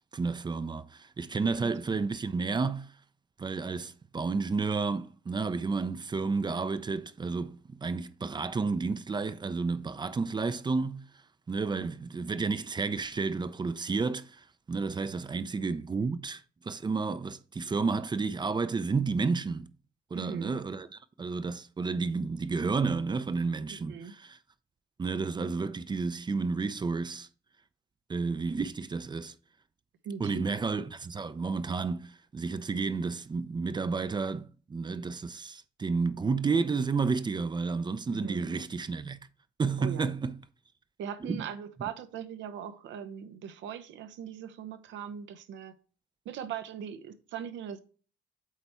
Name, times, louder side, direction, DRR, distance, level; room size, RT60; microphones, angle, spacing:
voice 1, 0.1-2.9 3.4-11.0 11.5-19.7 20.1-24.4 25.0-27.3 28.1-29.3 30.2-39.2 39.6-40.4 41.3-41.4, right 4 dB, 25° right, 0.5 m, -31 dB
voice 2, 20.1-20.5 23.7-24.1 30.0-30.5 38.1-38.5 39.8-40.1 41.0-45.8 46.2-47.8, right 8 dB, 75° right, 0.8 m, -40 dB
8.3 x 3.4 x 4.3 m
cardioid pair, 95°, 19 cm